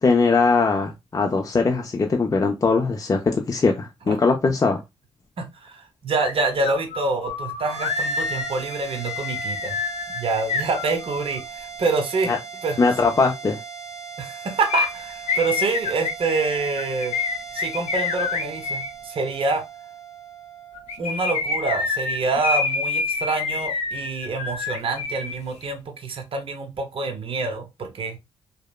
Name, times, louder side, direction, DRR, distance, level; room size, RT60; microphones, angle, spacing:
voice 1, 0.0-4.8 12.3-12.4 12.8-13.6, left 4 dB, 30° left, 0.4 m, -20 dB
voice 2, 5.4-9.8 10.1-12.3 12.6-12.8 14.2-17.1 17.5-19.6 21.0-28.2, right 3 dB, 55° right, 0.8 m, -26 dB
sound 1, 6.2-6.3 6.6-11.4 14.7-18.9 20.7-25.4 25.6-25.7, left 4 dB, 85° left, 0.5 m, -27 dB
sound 2, 7.6-22.2, right 6 dB, 5° right, 0.7 m, -39 dB
2.8 x 2.1 x 2.3 m
cardioid pair, 70°, 11 cm